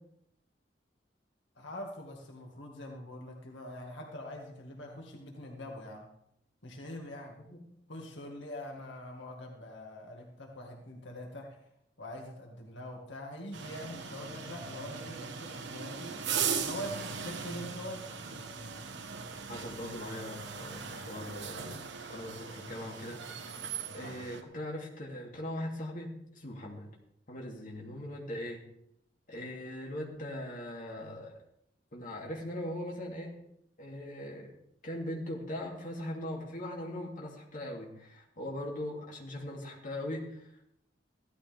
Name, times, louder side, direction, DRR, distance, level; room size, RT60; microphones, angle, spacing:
voice 1, 1.6-6.1 6.6-7.4 7.9-11.6 12.0-18.1, left 1 dB, 80° left, 0 dB, 2.1 m, -44 dB
sound 1, 13.5-24.4, right 6 dB, 75° right, 1.2 m, -39 dB
voice 2, 19.5-23.2 23.5-26.9 27.3-28.6 29.3-31.4 31.9-33.3 33.8-34.5 34.8-40.7, left 1 dB, 50° left, -2 dB, 2.8 m, -40 dB
16.0 x 13.0 x 3.5 m, 0.75 s
head